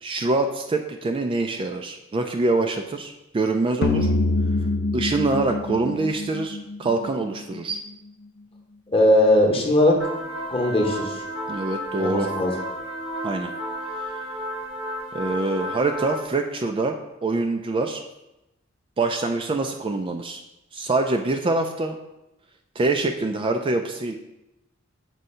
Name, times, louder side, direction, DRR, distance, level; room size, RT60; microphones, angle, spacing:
voice 1, 0.0-4.1 4.9-7.8 11.5-12.3 13.2-13.5 15.1-17.0 17.2-18.0 19.0-20.4 20.7-22.0 22.8-24.1, right 3 dB, 25° right, 4 dB, 0.3 m, -25 dB
sound 1, 3.8-7.1, left 2 dB, 50° left, 0.4 m, -24 dB
voice 2, 8.9-10.0 10.5-11.2 12.0-12.5, left 1 dB, 25° left, 1 dB, 0.9 m, -19 dB
sound 2, 10.0-16.2, equal, 80° right, 1.4 m, -32 dB
7.6 x 2.7 x 5.4 m, 0.93 s
head